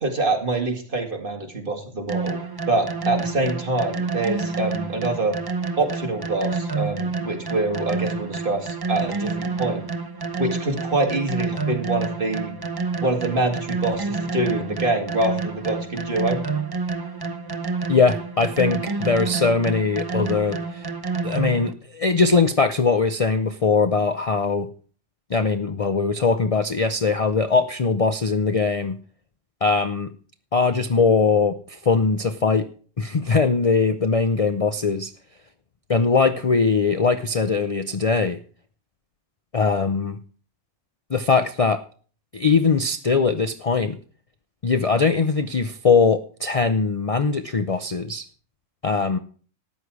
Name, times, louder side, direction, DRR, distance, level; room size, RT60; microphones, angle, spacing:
voice 1, 0.0-2.4 2.7-5.4 5.8-9.8 10.4-12.5 13.0-16.4, right 2 dB, 40° right, 3 dB, 2.2 m, -25 dB
sound 1, 2.1-21.7, right 4 dB, 20° right, 0.7 m, -29 dB
voice 2, 17.9-20.9 21.2-24.7 25.3-29.0 29.6-30.1 30.5-32.7 33.0-35.1 35.9-38.4 39.5-40.2 41.1-41.8 42.3-44.0 44.6-48.2 48.8-49.2, left 4 dB, 40° left, 10 dB, 0.5 m, -21 dB
13.5 x 9.6 x 4.8 m, 0.42 s
omnidirectional pair, 1.4 m